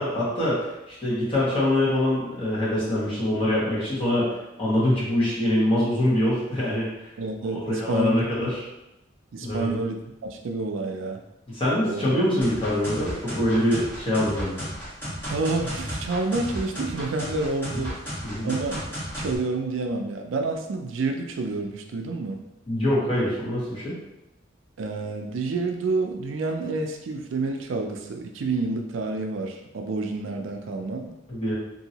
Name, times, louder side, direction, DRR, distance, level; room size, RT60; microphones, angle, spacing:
voice 1, 0.0-7.1 7.5-8.6 9.4-9.7 11.5-14.6 18.2-18.5 22.7-23.9 31.3-31.5, left 1 dB, 30° left, -9 dB, 1.3 m, -24 dB
voice 2, 7.2-8.5 9.3-10.0 10.2-11.2 11.9-12.2 15.3-18.0 18.4-18.8 19.2-22.4 24.8-31.1, right 3 dB, 80° right, 3 dB, 0.4 m, -29 dB
sound 1, 12.4-19.4, equal, 10° left, 1.4 m, -33 dB
2.9 x 2.7 x 2.8 m, 0.94 s
head